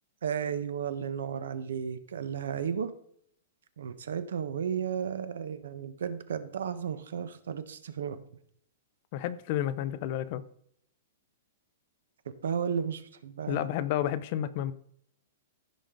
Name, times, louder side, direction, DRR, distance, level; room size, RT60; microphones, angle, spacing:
voice 1, 0.2-2.9 3.8-8.2 12.3-13.6, right 7 dB, 80° right, 1.1 m, -33 dB
voice 2, 9.1-10.4 13.5-14.7, left 11 dB, 30° left, 0.5 m, -31 dB
15.5 x 5.3 x 3.9 m
hypercardioid pair, 180°, 0 cm